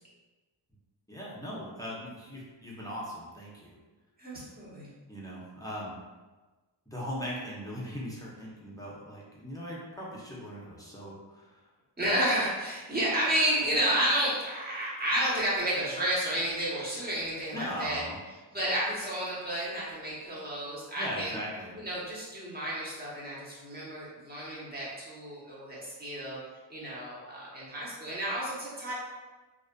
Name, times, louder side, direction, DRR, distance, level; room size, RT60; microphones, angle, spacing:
voice 1, 1.1-3.8 5.1-5.9 6.9-11.7 17.5-18.2 21.0-21.8, equal, 10° left, -6 dB, 0.6 m, -39 dB
voice 2, 4.2-4.9 12.0-18.0 18.5-21.4 21.7-26.4 26.7-28.9, right 1 dB, 20° right, -7 dB, 1.0 m, -31 dB
2.4 x 2.4 x 2.2 m, 1.2 s
cardioid pair, 85°, 49 cm